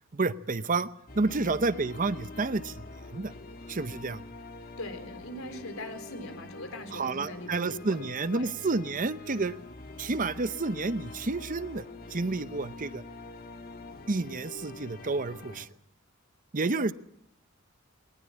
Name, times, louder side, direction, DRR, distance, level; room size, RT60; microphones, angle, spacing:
voice 1, 0.1-0.9 1.2-2.7 3.1-3.3 3.7-4.2 6.9-9.5 10.0-11.8 12.1-13.0 14.1-15.7 16.5-16.9, right 3 dB, 40° right, 14 dB, 0.8 m, -30 dB
sound 1, 1.1-15.7, left 2 dB, 50° left, 1.8 m, -45 dB
voice 2, 4.8-8.0 8.3-8.5, left 1 dB, 85° left, 8 dB, 3.8 m, -41 dB
21.0 x 19.5 x 8.5 m, 0.73 s
head